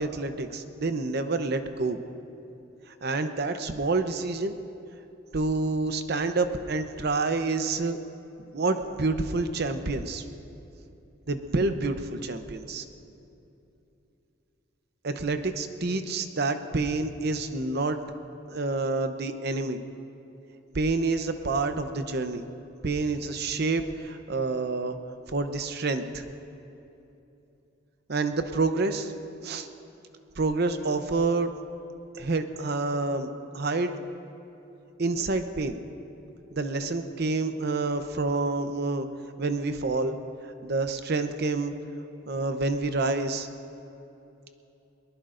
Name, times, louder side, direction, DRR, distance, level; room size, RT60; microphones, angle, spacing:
voice 1, 0.0-2.0 3.0-4.5 5.3-8.0 8.5-10.2 11.3-12.8 15.0-18.0 18.5-19.8 20.7-22.4 22.8-25.0 25.3-26.3 28.1-29.1 29.4-29.7 30.4-31.5 32.1-34.0 35.0-35.8 36.5-39.1 39.4-40.2 40.6-41.7 42.3-43.5, right 3 dB, 55° right, 8 dB, 0.8 m, -28 dB
22.0 x 20.0 x 2.6 m, 2.9 s
head